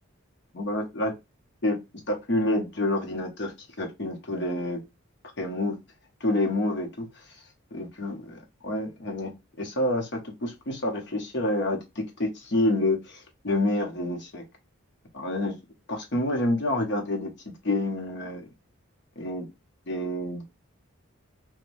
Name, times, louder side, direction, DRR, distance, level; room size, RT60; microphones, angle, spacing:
voice 1, 0.5-1.1 1.6-1.8 2.1-3.5 3.8-4.8 5.4-5.8 6.2-7.1 7.7-14.4 15.1-15.6 15.9-17.3 17.6-18.5 19.2-19.5 19.9-20.4, left 1 dB, 55° left, 2 dB, 0.8 m, -28 dB
3.2 x 2.2 x 2.5 m, 0.22 s
head